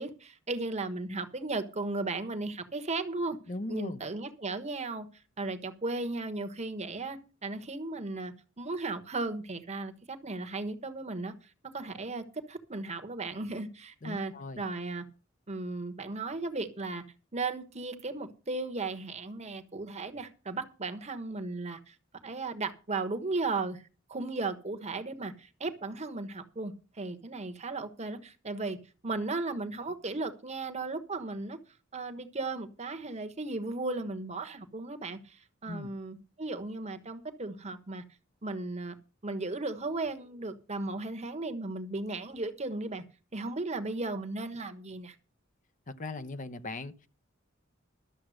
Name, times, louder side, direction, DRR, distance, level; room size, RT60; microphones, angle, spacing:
voice 1, 0.0-3.4 3.7-5.1 5.4-11.3 11.7-15.0 15.5-17.0 17.3-21.9 22.2-23.8 24.1-28.8 29.0-31.6 31.9-38.0 38.4-39.0 39.2-43.0 43.3-45.1, right 3 dB, 35° right, 1.2 m, -36 dB
voice 2, 3.5-4.0 14.0-14.6 35.7-35.9 45.9-47.1, left 2 dB, 40° left, 0.8 m, -39 dB
12.5 x 7.4 x 6.4 m
head